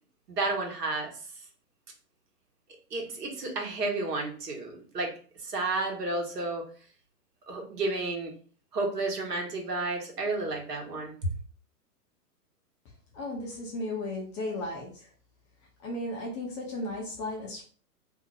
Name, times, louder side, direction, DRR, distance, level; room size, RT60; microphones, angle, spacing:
voice 1, 0.3-1.1 2.9-5.1 5.4-6.7 7.5-8.3 8.7-11.3, right 2 dB, 80° right, 1 dB, 1.1 m, -31 dB
voice 2, 13.1-15.1 15.8-17.6, left 1 dB, 20° left, -2 dB, 0.4 m, -35 dB
2.7 x 2.0 x 3.8 m, 0.42 s
hypercardioid pair, 115°, 47 cm